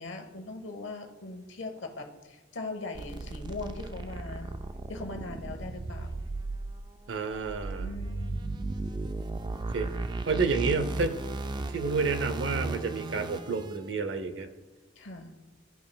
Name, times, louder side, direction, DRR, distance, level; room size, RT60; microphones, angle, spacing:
voice 1, 0.0-4.5 4.9-6.3 7.8-8.7 15.0-15.3, left 2 dB, 75° left, 5 dB, 1.0 m, -40 dB
sound 1, 2.9-13.8, right 2 dB, 25° right, 0.3 m, -36 dB
voice 2, 7.1-7.9 9.7-9.9 10.3-11.2 11.7-14.5, right 4 dB, 70° right, 10 dB, 0.6 m, -29 dB
13.5 x 5.4 x 2.3 m, 1.2 s
head